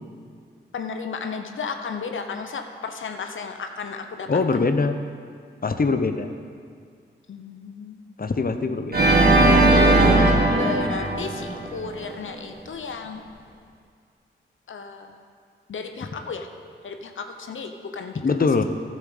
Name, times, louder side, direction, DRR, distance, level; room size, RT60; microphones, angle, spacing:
voice 1, 0.7-4.3 7.3-8.0 9.7-10.0 10.3-13.2 14.7-15.1 15.7-16.5 16.8-18.2, left 5 dB, 70° left, 6 dB, 0.9 m, -34 dB
voice 2, 4.3-5.0 5.6-6.3 8.2-9.0 9.8-10.3 18.1-18.6, left 4 dB, 45° left, 8 dB, 1.0 m, -23 dB
Organ, 8.9-12.0, right 2 dB, 50° right, 2.2 m, -18 dB
11.5 x 7.6 x 6.7 m, 2.1 s
supercardioid pair, 40°, 21 cm